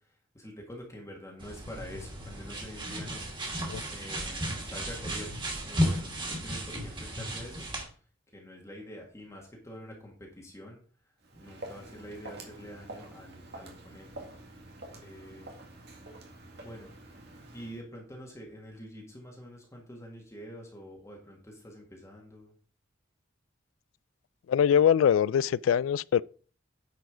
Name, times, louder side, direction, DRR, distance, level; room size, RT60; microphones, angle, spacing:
voice 1, 0.3-3.3 3.9-7.7 8.3-10.8 11.3-14.1 15.0-15.6 16.6-16.9 17.5-22.5, equal, 15° left, 1.8 m, -46 dB
sound 1, 1.4-7.8, equal, 25° right, 2.5 m, -34 dB
Walk footsteps, 11.2-17.8, right 2 dB, 60° right, 2.0 m, -47 dB
voice 2, 24.5-26.2, left 8 dB, 85° left, 0.3 m, -23 dB
9.4 x 4.9 x 4.9 m
head